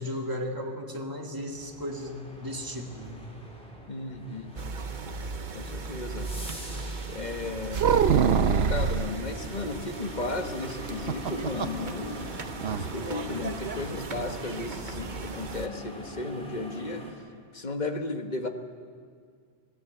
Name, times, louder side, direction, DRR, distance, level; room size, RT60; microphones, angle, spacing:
voice 1, 0.0-3.2, equal, 20° right, 1 dB, 2.1 m, -35 dB
sound 1, 1.4-17.1, equal, 5° left, 3.9 m, -44 dB
voice 2, 3.9-4.5 5.5-6.3 7.1-7.9 8.2-12.2 12.5-17.0 17.5-18.5, left 3 dB, 40° left, 6 dB, 1.5 m, -35 dB
sound 2, 4.6-15.7, right 4 dB, 45° right, 1.1 m, -38 dB
sound 3, 7.7-9.2 10.9-11.8 12.1-12.2 12.6-12.9, right 7 dB, 65° right, 1.0 m, -23 dB
25.0 x 17.0 x 8.0 m, 2.1 s
omnidirectional pair, 1.2 m